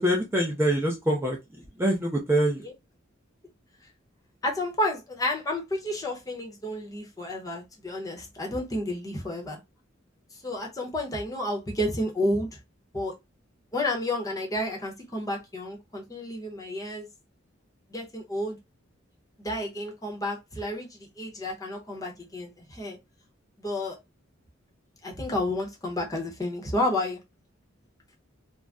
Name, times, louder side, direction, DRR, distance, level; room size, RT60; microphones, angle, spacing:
voice 1, 0.0-1.4 1.8-2.7, right 1 dB, 10° right, 0.5 m, -24 dB
voice 2, 4.4-9.6 10.4-12.5 12.9-13.1 13.7-17.1 17.9-18.6 19.4-23.0 23.6-24.0 25.0-27.2, left 1 dB, 20° left, 0.8 m, -31 dB
2.5 x 2.1 x 3.4 m
head